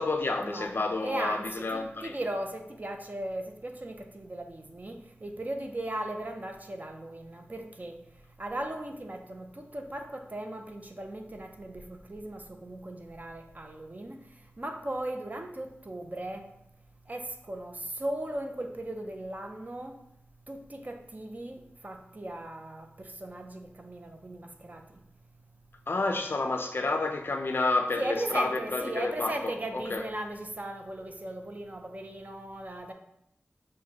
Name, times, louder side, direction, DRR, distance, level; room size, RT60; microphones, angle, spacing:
voice 1, 0.0-2.2 25.9-30.0, left 3 dB, 55° left, 0.4 m, -30 dB
voice 2, 1.0-8.0 8.4-14.2 14.6-16.5 17.1-20.0 20.5-24.8 28.0-32.9, right 1 dB, 40° right, 0.5 m, -37 dB
6.3 x 2.1 x 2.8 m
wide cardioid pair, 60°, 4 cm